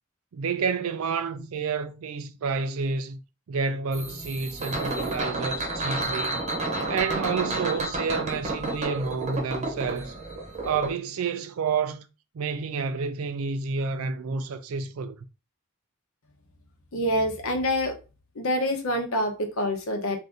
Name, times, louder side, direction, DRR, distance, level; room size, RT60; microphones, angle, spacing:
voice 1, 0.3-3.2 3.5-6.4 6.9-10.2 10.6-12.1 12.3-15.2, right 5 dB, 90° right, 0.4 m, -29 dB
sound 1, 3.9-10.9, right 2 dB, 35° right, 0.8 m, -31 dB
voice 2, 16.9-17.9 18.4-20.2, equal, 80° left, 0.8 m, -26 dB
2.6 x 2.5 x 3.5 m
head